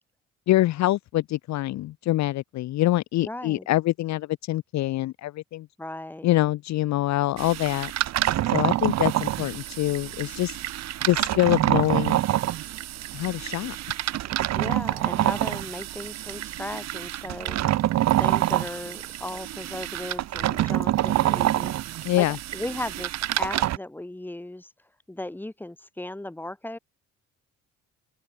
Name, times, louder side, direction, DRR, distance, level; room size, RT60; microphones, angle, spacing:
voice 1, 0.5-5.7 6.2-7.9 8.5-10.6 11.0-12.2 13.1-13.8 22.0-22.4, left 15 dB, 65° left, 0.5 m, -25 dB
voice 2, 3.2-3.7 5.8-6.3 14.5-17.6 18.2-21.7 22.2-22.3 22.5-24.7 25.1-26.8, left 1 dB, 5° left, 1.7 m, -36 dB
sound 1, 7.4-23.8, right 14 dB, 60° right, 0.6 m, -27 dB
open air
cardioid pair, 90°, 30 cm